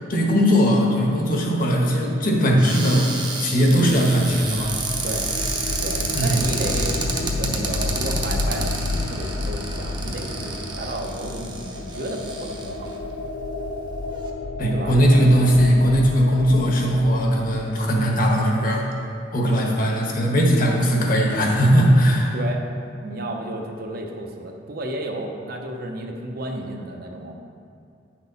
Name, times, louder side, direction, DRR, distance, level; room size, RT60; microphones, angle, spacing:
voice 1, 0.0-3.1 3.4-4.7 6.1-6.5 14.6-18.9 19.3-22.3, equal, 50° left, -1 dB, 1.3 m, -19 dB
Cupboard open or close, 2.6-12.9 13.6-13.7 14.0-14.3, right 3 dB, 25° right, 0.8 m, -30 dB
sound 1, 3.8-18.4, left 3 dB, 75° left, 0.5 m, -31 dB
voice 2, 5.8-6.9 7.2-13.0 14.7-14.9 19.5-19.6 22.3-22.6 23.0-27.3, right 1 dB, 50° right, 2 dB, 0.8 m, -32 dB
9.5 x 6.1 x 4.1 m, 2.5 s
head